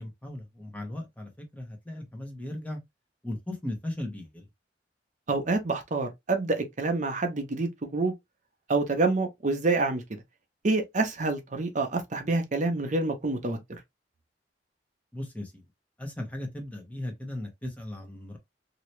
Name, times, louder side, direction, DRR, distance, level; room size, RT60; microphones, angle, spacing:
voice 1, 0.0-2.8 3.2-4.5 15.1-15.6 16.0-18.4, left 1 dB, 10° left, 1.1 m, -37 dB
voice 2, 5.3-8.1 8.7-10.0 10.6-13.8, right 3 dB, 45° right, 0.8 m, -27 dB
2.9 x 2.8 x 3.1 m
head